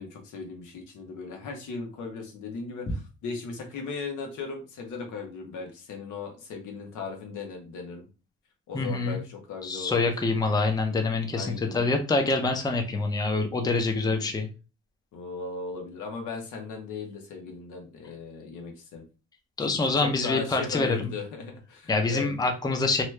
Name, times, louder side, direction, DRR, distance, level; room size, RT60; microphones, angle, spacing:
voice 1, 0.0-8.1 8.7-10.1 11.3-11.9 14.0-14.3 15.1-19.1 19.6-22.3, left 4 dB, 85° left, 3 dB, 1.1 m, -37 dB
voice 2, 8.7-9.2 9.6-14.5 19.6-21.1 21.9-23.0, left 3 dB, 15° left, 4 dB, 0.5 m, -26 dB
3.1 x 2.3 x 3.2 m, 0.33 s
cardioid pair, 115°, 30 cm